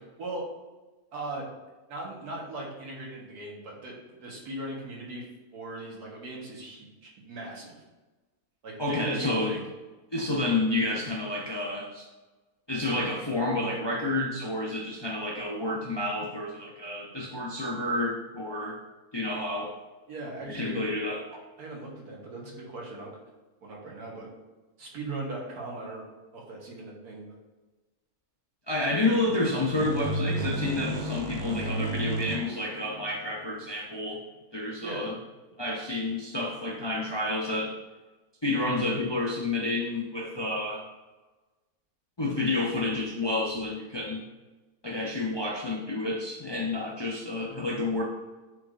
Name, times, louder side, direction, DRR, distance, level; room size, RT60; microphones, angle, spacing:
voice 1, 0.2-0.5 1.1-1.5 1.9-7.8 8.6-9.6 20.1-20.8 21.6-23.1 23.6-24.3 24.8-26.0 26.3-27.4 29.0-29.4 34.8-35.1 38.5-38.7, right 2 dB, 80° right, -2 dB, 1.9 m, -39 dB
voice 2, 8.8-9.6 10.1-12.1 12.7-18.8 19.1-19.7 20.5-21.4 28.7-34.2 34.5-35.1 35.6-37.7 38.4-40.8 42.2-44.2 44.8-48.0, left 2 dB, 45° left, -2 dB, 0.3 m, -29 dB
sound 1, 29.7-33.5, right 1 dB, 55° right, 0.5 m, -32 dB
8.3 x 4.7 x 2.6 m, 1.2 s
omnidirectional pair, 1.6 m